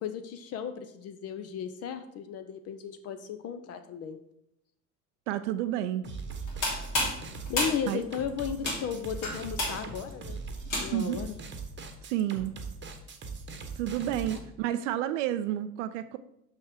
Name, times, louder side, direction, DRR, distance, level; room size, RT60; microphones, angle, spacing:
voice 1, 0.0-4.2 7.5-10.4 10.8-11.3 14.3-14.4, left 8 dB, 35° left, 9 dB, 0.6 m, -35 dB
voice 2, 5.3-6.0 7.9-8.0 10.9-11.2 12.0-12.6 13.8-16.2, right 12 dB, 55° right, 12 dB, 0.5 m, -30 dB
sound 1, 6.0-14.4, right 4 dB, 25° right, 1.0 m, -40 dB
sound 2, 6.3-11.2, left 1 dB, 65° left, 3.0 m, -33 dB
6.0 x 5.6 x 4.7 m, 0.77 s
figure-of-eight pair, 60°, 44 cm